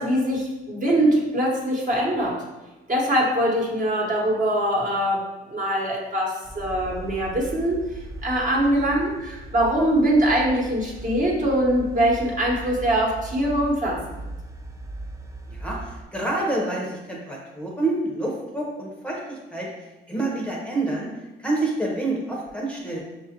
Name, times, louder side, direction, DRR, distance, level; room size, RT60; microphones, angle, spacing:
voice 1, 0.0-2.4 2.9-7.8 8.2-14.2, right 1 dB, 40° right, -3 dB, 1.1 m, -23 dB
sound 1, 6.4-16.0, right 1 dB, 15° right, 0.4 m, -38 dB
voice 2, 15.5-19.7 20.1-21.1 21.4-23.1, right 2 dB, 5° left, -3 dB, 0.8 m, -28 dB
5.5 x 2.4 x 2.8 m, 1.1 s
cardioid pair, 90°, 20 cm